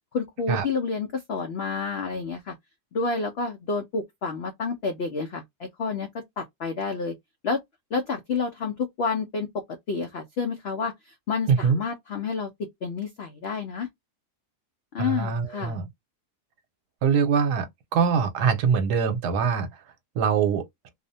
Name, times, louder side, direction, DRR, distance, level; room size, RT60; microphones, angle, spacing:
voice 1, 0.1-2.6 2.9-7.1 7.4-7.6 7.9-9.5 9.9-13.9 14.9-15.8, left 4 dB, 85° left, 0.5 m, -29 dB
voice 2, 11.5-11.8 15.0-15.9 17.0-19.8 20.2-20.6, right 6 dB, 80° right, 1.2 m, -23 dB
2.7 x 2.1 x 2.6 m
omnidirectional pair, 1.7 m